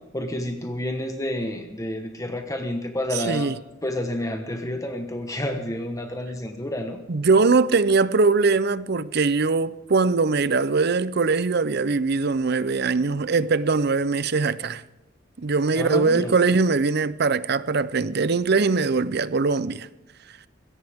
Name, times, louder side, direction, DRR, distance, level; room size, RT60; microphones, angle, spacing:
voice 1, 0.1-3.5 3.8-7.0 15.7-16.3, left 1 dB, 15° left, 1.2 m, -29 dB
voice 2, 3.1-3.6 7.1-14.8 15.4-19.9, right 4 dB, 55° right, 0.7 m, -21 dB
21.5 x 17.5 x 3.6 m
head